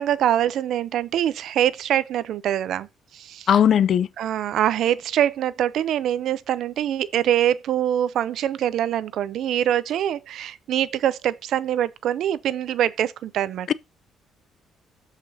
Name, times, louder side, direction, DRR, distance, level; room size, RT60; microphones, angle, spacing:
voice 1, 0.0-2.9 3.1-3.6 4.2-13.7, right 11 dB, 70° right, 0.5 m, -24 dB
voice 2, 3.5-4.1 13.7-13.8, left 9 dB, 55° left, 0.4 m, -17 dB
13.5 x 5.0 x 2.8 m
cardioid pair, 115°, 0 cm